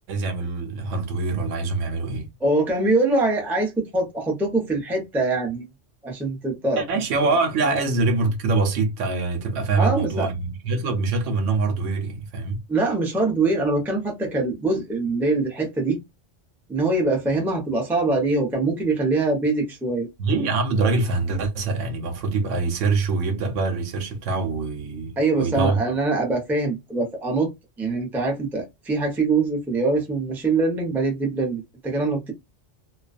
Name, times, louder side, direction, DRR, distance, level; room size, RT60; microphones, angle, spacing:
voice 1, 0.1-2.3 6.8-12.6 20.2-25.9, right 3 dB, 80° right, 1.0 m, -24 dB
voice 2, 2.4-5.7 6.0-6.8 7.6-7.7 9.8-10.3 12.7-16.0 16.7-20.1 25.2-27.5 27.8-32.3, right 3 dB, ahead, 0.5 m, -23 dB
2.3 x 2.2 x 2.4 m
omnidirectional pair, 1.3 m